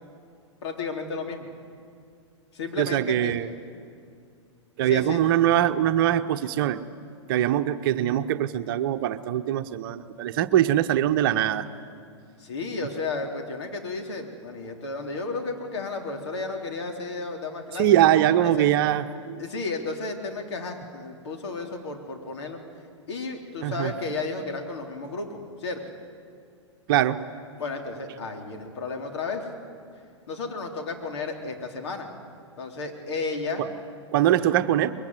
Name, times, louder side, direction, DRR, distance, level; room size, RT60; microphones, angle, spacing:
voice 1, 0.6-1.5 2.5-3.4 4.8-5.2 12.4-18.7 19.4-22.6 23.1-25.8 27.6-29.5 30.3-32.1 32.6-33.6, left 3 dB, 60° left, 3 dB, 3.6 m, -33 dB
voice 2, 2.8-3.5 4.8-6.8 7.3-11.7 17.8-19.4 23.6-23.9 26.9-27.2 34.1-34.9, right 12 dB, 45° right, 9 dB, 1.0 m, -22 dB
23.5 x 22.0 x 9.7 m, 2.3 s
figure-of-eight pair, 110°, 15 cm